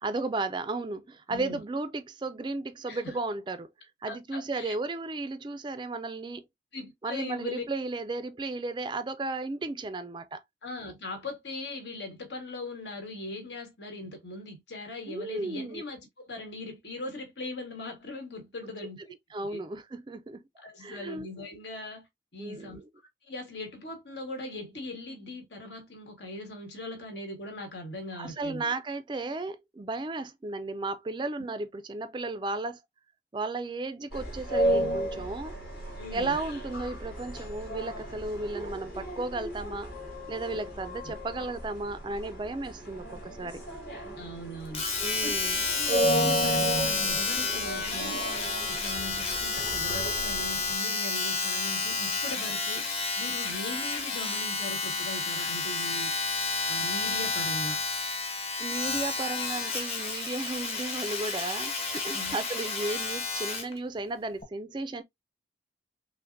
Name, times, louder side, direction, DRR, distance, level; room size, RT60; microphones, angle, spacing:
voice 1, 0.0-3.7 4.0-6.4 7.0-10.4 15.1-15.8 19.3-20.4 20.8-21.3 22.4-22.9 28.2-32.8 33.3-35.6 36.1-39.9 40.3-43.6 45.0-45.7 58.6-65.0, right 2 dB, 25° right, 0.3 m, -34 dB
voice 2, 1.3-1.6 2.9-3.1 4.1-4.7 6.7-7.6 10.6-19.0 19.5-19.6 20.6-22.1 22.3-22.8 23.2-28.6 36.0-36.4 40.5-40.6 44.2-44.8 45.2-45.4 45.7-48.3 48.7-52.9 53.2-56.1 56.7-57.8 62.1-62.4, left 2 dB, 80° left, 1.5 m, -40 dB
sound 1, 34.1-50.7, right 1 dB, 65° left, 2.6 m, -33 dB
Domestic sounds home sounds, 44.7-63.7 64.4-64.5, left 4 dB, 35° left, 1.0 m, -31 dB
5.6 x 2.1 x 2.5 m
head